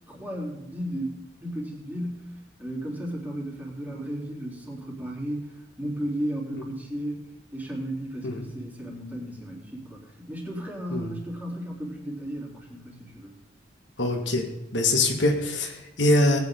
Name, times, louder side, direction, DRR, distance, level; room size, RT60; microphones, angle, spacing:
voice 1, 0.1-2.3 2.6-7.2 7.5-13.3, right 1 dB, 10° right, -3 dB, 3.8 m, -34 dB
voice 2, 14.0-14.5 14.7-16.4, left 1 dB, 75° left, 3 dB, 2.1 m, -23 dB
19.0 x 9.6 x 4.0 m, 0.91 s
head